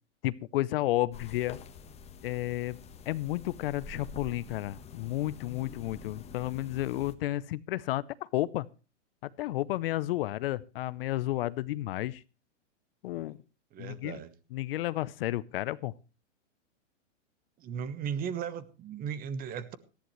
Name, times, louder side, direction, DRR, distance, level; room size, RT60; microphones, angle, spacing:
voice 1, 0.2-1.6 2.2-2.8 3.1-8.7 9.2-12.2 13.0-13.4 13.8-14.2 14.5-15.9, left 16 dB, 50° left, 19 dB, 0.7 m, -32 dB
sound 1, 1.1-7.1, left 5 dB, 15° left, 1.3 m, -47 dB
voice 2, 13.7-14.3 17.6-19.8, right 7 dB, 25° right, 16 dB, 1.2 m, -36 dB
18.5 x 14.5 x 3.1 m, 0.32 s
hypercardioid pair, 135°, 37 cm